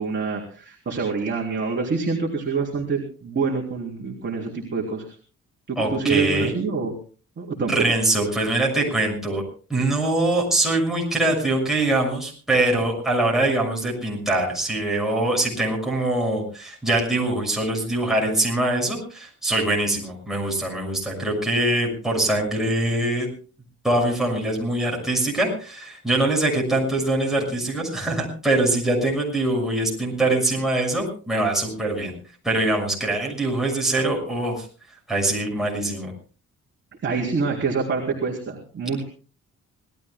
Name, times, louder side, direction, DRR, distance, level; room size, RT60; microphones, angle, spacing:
voice 1, 0.0-5.1 5.7-6.9 7.4-7.7 37.0-39.0, right 4 dB, 40° right, -1 dB, 3.5 m, -26 dB
voice 2, 5.8-6.5 7.6-9.4 9.7-23.3 23.8-32.1 32.4-34.7 35.1-36.1, right 2 dB, ahead, -2 dB, 6.4 m, -23 dB
26.0 x 19.0 x 2.2 m, 0.38 s
wide cardioid pair, 175°, 30 cm